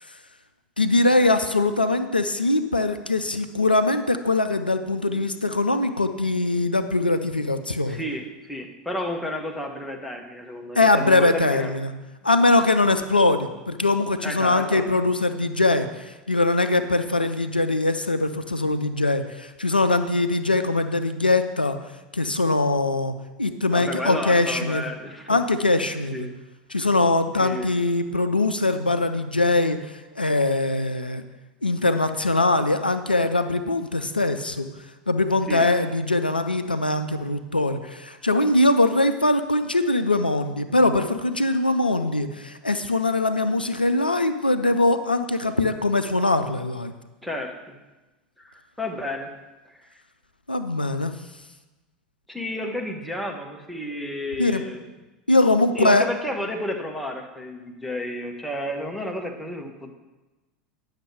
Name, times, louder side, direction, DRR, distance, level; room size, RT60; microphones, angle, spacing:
voice 1, 0.8-8.0 10.7-11.9 12.2-21.8 22.1-23.1 23.4-24.9 25.3-26.3 26.7-31.2 31.6-34.7 35.1-46.9 50.5-51.1 54.4-54.6 55.3-56.1, left 2 dB, 85° left, 9 dB, 0.5 m, -22 dB
voice 2, 7.9-11.7 14.2-14.9 23.7-25.4 26.1-26.3 27.4-27.7 35.5-35.7 47.2-47.8 48.4-49.3 52.3-54.9 55.7-59.9, left 1 dB, ahead, 1 dB, 1.4 m, -31 dB
9.9 x 6.5 x 4.8 m, 1.1 s
figure-of-eight pair, 80°, 5 cm